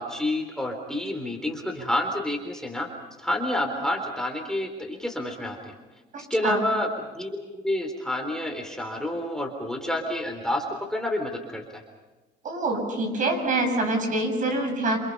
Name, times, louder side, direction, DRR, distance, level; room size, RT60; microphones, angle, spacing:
voice 1, 0.0-2.9 3.2-5.8 6.3-6.9 7.2-11.8, left 1 dB, 5° left, 2 dB, 3.9 m, -29 dB
voice 2, 6.1-6.6 12.4-15.0, right 2 dB, 50° right, 4 dB, 7.6 m, -26 dB
29.0 x 28.0 x 5.6 m, 1.2 s
cardioid pair, 110°, 17 cm